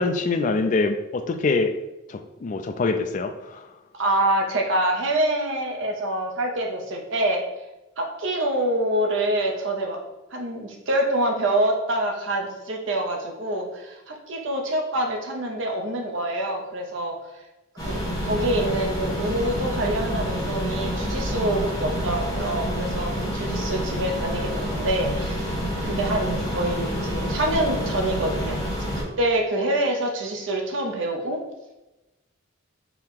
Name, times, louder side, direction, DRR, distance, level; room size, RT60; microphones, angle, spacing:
voice 1, 0.0-1.8 2.1-3.7, left 3 dB, 40° left, 7 dB, 0.3 m, -24 dB
voice 2, 3.9-7.4 8.0-10.0 10.3-17.1 17.8-25.6 25.8-31.4, right 1 dB, 65° right, 1 dB, 0.7 m, -26 dB
sound 1, 17.8-29.0, equal, 20° left, 1.0 m, -28 dB
4.6 x 2.8 x 3.6 m, 1.0 s
head